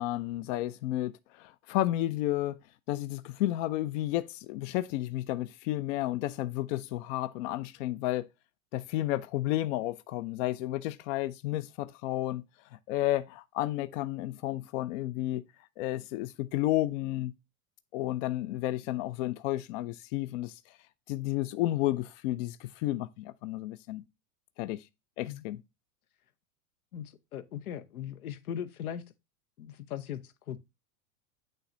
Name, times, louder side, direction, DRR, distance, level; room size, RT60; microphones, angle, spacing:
voice 1, 0.0-2.6 2.9-8.3 8.7-12.4 12.7-15.4 15.8-17.3 17.9-20.8 21.1-24.0 24.6-24.8 25.2-25.6, left 15 dB, 60° left, 0.5 m, -32 dB
voice 2, 26.9-29.0 29.6-30.6, left 9 dB, 90° left, 0.8 m, -39 dB
8.9 x 3.3 x 3.8 m
hypercardioid pair, 110°, 42 cm